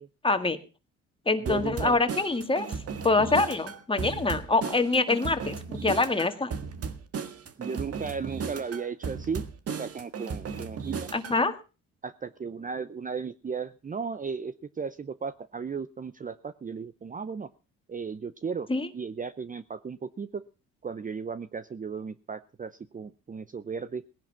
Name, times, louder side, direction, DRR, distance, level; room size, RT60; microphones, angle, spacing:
voice 1, 0.2-0.6 1.3-2.7 3.0-6.5 11.1-11.5 18.7-18.9, left 3 dB, 15° left, 8 dB, 2.0 m, -25 dB
voice 2, 1.4-2.0 7.6-11.1 12.0-17.5 17.9-18.7 18.9-20.4 20.8-24.0, right 5 dB, 25° right, 14 dB, 0.7 m, -35 dB
sound 1, 1.5-11.4, right 5 dB, 50° right, 1.7 m, -36 dB
18.5 x 10.5 x 5.6 m, 0.35 s
cardioid pair, 90°, 30 cm